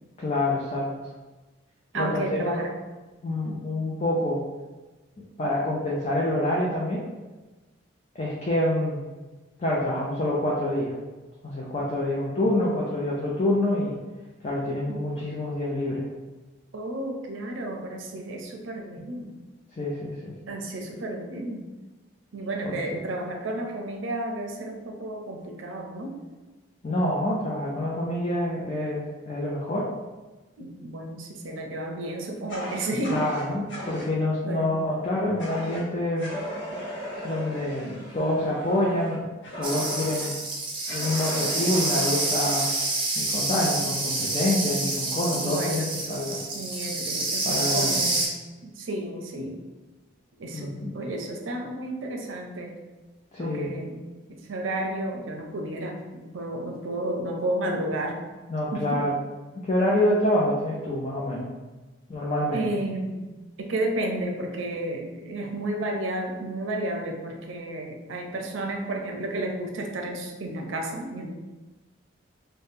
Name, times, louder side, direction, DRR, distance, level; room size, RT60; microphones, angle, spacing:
voice 1, 0.2-0.9 1.9-2.6 3.2-4.4 5.4-7.1 8.2-9.0 9.6-10.9 11.4-14.0 14.4-16.1 19.8-20.3 22.7-23.0 26.8-29.9 33.1-36.3 37.2-39.3 39.6-40.3 40.9-42.7 43.1-46.4 47.5-48.0 50.5-51.0 53.3-53.8 58.5-59.1 59.6-61.5 62.1-62.6, left 1 dB, 30° left, -5 dB, 0.4 m, -27 dB
voice 2, 1.9-2.7 14.9-15.0 16.7-19.3 20.5-21.7 22.3-26.1 30.6-33.2 34.5-34.8 45.3-48.3 48.6-49.6 50.4-52.8 53.4-54.0 54.3-58.2 58.7-59.0 62.5-63.1 63.6-71.3, right 1 dB, 75° right, 2 dB, 0.5 m, -32 dB
Fire, 32.5-34.1 35.4-35.8 36.2-40.3 40.9-42.7, equal, 60° left, 0.7 m, -37 dB
sound 1, 39.6-48.3, right 2 dB, 25° right, 0.5 m, -28 dB
2.7 x 2.1 x 3.5 m, 1.2 s
head